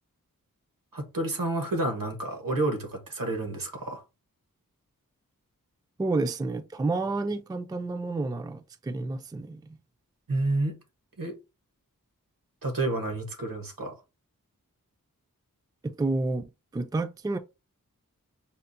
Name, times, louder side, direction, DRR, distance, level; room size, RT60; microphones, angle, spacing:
voice 1, 0.9-4.0 10.3-10.8 11.2-11.3 12.6-14.0, right 2 dB, 75° right, 1.1 m, -29 dB
voice 2, 6.0-9.6 15.8-17.4, right 3 dB, 10° right, 0.3 m, -30 dB
5.6 x 2.0 x 2.6 m
wide cardioid pair, 45°, 34 cm